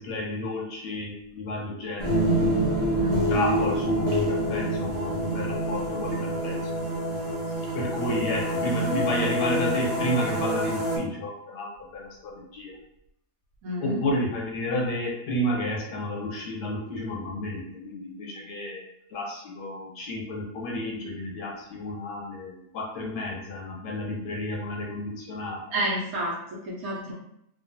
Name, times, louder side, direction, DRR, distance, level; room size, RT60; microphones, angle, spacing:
voice 1, 0.0-2.3 3.3-6.7 7.7-12.8 13.8-25.8, left 1 dB, 90° left, -1 dB, 1.3 m, -31 dB
sound 1, 2.0-11.0, right 1 dB, 35° right, 0.5 m, -26 dB
voice 2, 13.6-14.0 25.7-27.1, equal, 70° right, -3 dB, 1.0 m, -30 dB
2.8 x 2.4 x 2.6 m, 0.76 s
omnidirectional pair, 1.8 m